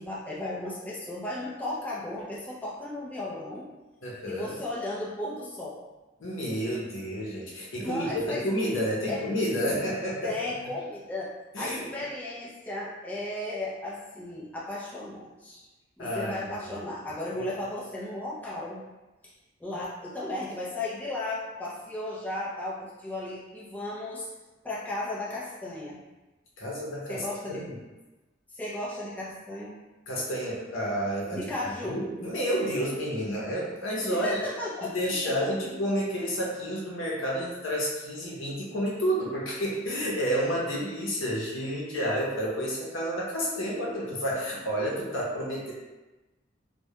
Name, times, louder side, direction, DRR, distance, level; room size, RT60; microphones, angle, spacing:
voice 1, 0.0-3.7 4.3-5.8 7.8-8.4 9.1-9.2 10.2-15.7 16.0-18.9 19.6-24.3 24.6-26.0 27.1-27.6 28.5-29.8 31.3-32.1 34.1-35.0 35.2-35.3, left 1 dB, 10° left, -7 dB, 0.4 m, -35 dB
voice 2, 4.0-4.6 6.2-10.4 11.5-11.9 16.0-16.8 17.3-17.5 26.6-27.8 30.1-31.5 31.8-34.3 34.8-45.7, equal, 80° left, -4 dB, 0.7 m, -30 dB
2.2 x 2.1 x 2.8 m, 1.1 s
head